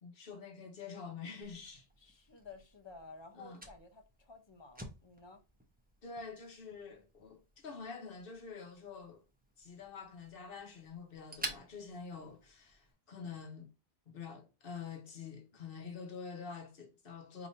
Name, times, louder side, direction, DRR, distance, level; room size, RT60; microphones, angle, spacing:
voice 1, 0.0-1.9 3.4-3.6 6.0-9.2 9.6-13.7 14.1-17.5, left 5 dB, 60° left, 1.2 m, -47 dB
Fire, 1.4-12.9, right 1 dB, 10° right, 0.7 m, -51 dB
voice 2, 2.0-5.4, left 3 dB, 30° left, 0.8 m, -53 dB
5.2 x 2.9 x 2.6 m
omnidirectional pair, 1.0 m